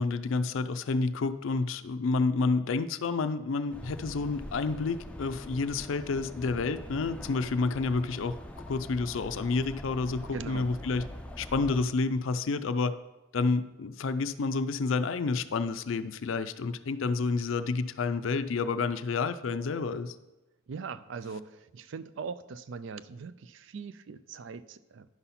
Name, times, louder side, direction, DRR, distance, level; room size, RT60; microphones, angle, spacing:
voice 1, 0.0-8.3 8.7-11.0 11.4-12.9 13.3-20.2, left 4 dB, 70° left, 11 dB, 0.4 m, -29 dB
sound 1, 3.7-11.8, left 1 dB, 5° left, 0.4 m, -43 dB
voice 2, 10.3-10.7 20.7-25.1, right 5 dB, 60° right, 14 dB, 0.4 m, -41 dB
11.0 x 4.1 x 5.6 m, 1.0 s
head